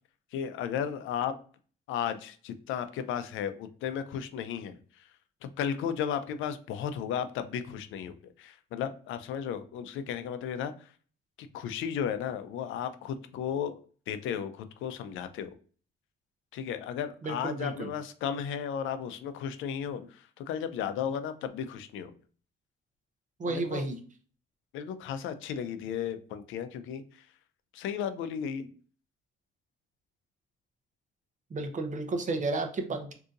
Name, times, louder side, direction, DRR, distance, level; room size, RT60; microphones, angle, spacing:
voice 1, 0.3-1.3 1.9-4.8 5.6-10.9 11.4-13.8 14.1-15.5 16.5-22.1 23.5-23.9 24.7-27.3 27.7-28.7, left 8 dB, 85° left, 10 dB, 0.4 m, -34 dB
voice 2, 17.2-17.9 23.4-24.0 31.5-33.1, right 2 dB, 40° right, 5 dB, 0.8 m, -32 dB
3.7 x 2.7 x 2.5 m, 0.42 s
cardioid pair, 90°, 20 cm